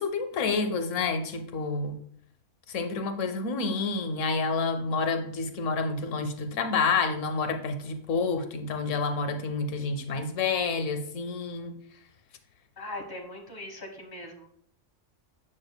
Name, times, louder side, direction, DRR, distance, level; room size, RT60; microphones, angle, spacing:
voice 1, 0.0-2.0 2.7-11.7, left 4 dB, 85° left, 7 dB, 1.1 m, -29 dB
voice 2, 12.8-14.5, left 1 dB, 20° left, 0 dB, 1.2 m, -40 dB
8.8 x 6.2 x 2.2 m, 0.66 s
omnidirectional pair, 1.3 m